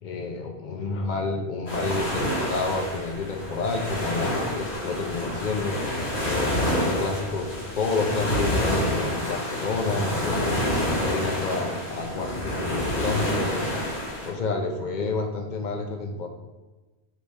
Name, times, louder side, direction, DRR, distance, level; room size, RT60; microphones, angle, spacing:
voice 1, 0.0-2.2 2.5-7.5 7.7-10.6 10.9-13.7 14.2-16.3, left 3 dB, 55° left, 3 dB, 0.6 m, -29 dB
sound 1, 1.7-14.3, left 1 dB, 80° left, 1.8 m, -28 dB
3.4 x 3.3 x 4.1 m, 1.2 s
omnidirectional pair, 1.1 m